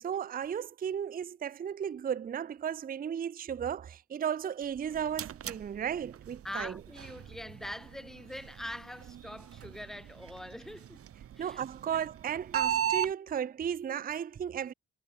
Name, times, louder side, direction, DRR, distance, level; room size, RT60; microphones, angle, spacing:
voice 1, 0.0-6.7 11.4-14.7, right 8 dB, 30° right, 0.5 m, -35 dB
sound 1, 4.6-13.1, right 10 dB, 50° right, 0.9 m, -38 dB
voice 2, 6.4-11.1 11.3-12.1, left 1 dB, ahead, 0.9 m, -43 dB
cardioid pair, 90°, 30 cm